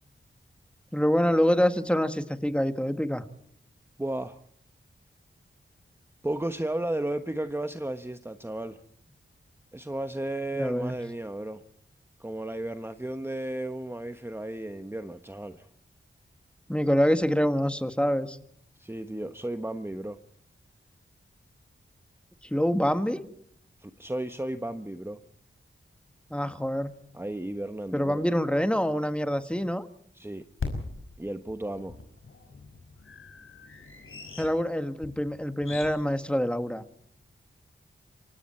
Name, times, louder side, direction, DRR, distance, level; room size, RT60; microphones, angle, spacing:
voice 1, 0.9-3.2 10.6-10.9 16.7-18.4 22.4-23.2 26.3-26.9 27.9-29.8 34.4-36.8, equal, 5° left, 9 dB, 1.6 m, -26 dB
voice 2, 4.0-4.4 6.2-8.8 9.7-11.6 12.2-15.7 18.8-20.2 23.8-25.2 27.1-28.2 30.1-30.4 31.2-32.0, right 1 dB, 10° right, 8 dB, 1.1 m, -34 dB
sound 1, 26.1-26.2 26.9-27.0 27.2-27.3 30.6-35.9, left 4 dB, 85° left, 5.8 m, -40 dB
27.5 x 24.5 x 4.4 m, 0.66 s
wide cardioid pair, 85°, 21 cm